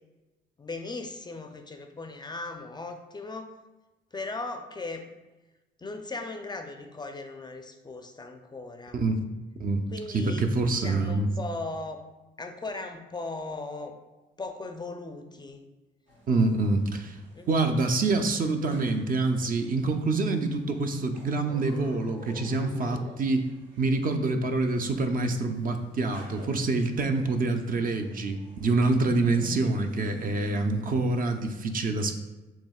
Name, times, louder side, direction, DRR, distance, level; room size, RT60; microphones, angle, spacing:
voice 1, 0.6-3.5 4.1-5.1 5.8-9.0 9.9-10.5 10.8-12.0 12.4-14.0 14.4-15.6 17.4-17.6 27.1-27.3, left 3 dB, 20° left, 6 dB, 0.4 m, -38 dB
voice 2, 10.1-11.3 16.3-17.2 17.5-23.5 23.8-32.2, right 3 dB, 45° right, 6 dB, 0.5 m, -26 dB
sound 1, 16.1-31.7, equal, 70° right, 1.3 m, -50 dB
7.1 x 2.8 x 2.3 m, 1.1 s
cardioid pair, 90°, 20 cm